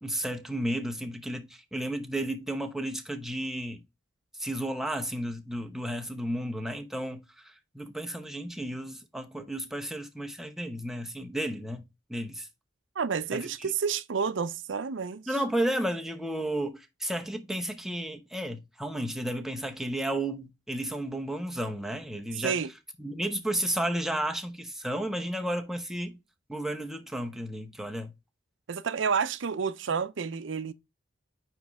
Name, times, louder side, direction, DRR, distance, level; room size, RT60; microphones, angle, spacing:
voice 1, 0.0-3.8 4.4-11.8 12.1-12.5 13.3-13.7 15.3-22.6 23.0-26.2 26.5-28.1, right 1 dB, ahead, 0.8 m, -33 dB
voice 2, 13.0-15.2 22.4-22.7 28.7-30.7, right 6 dB, 70° right, 0.5 m, -30 dB
9.2 x 3.1 x 3.5 m
head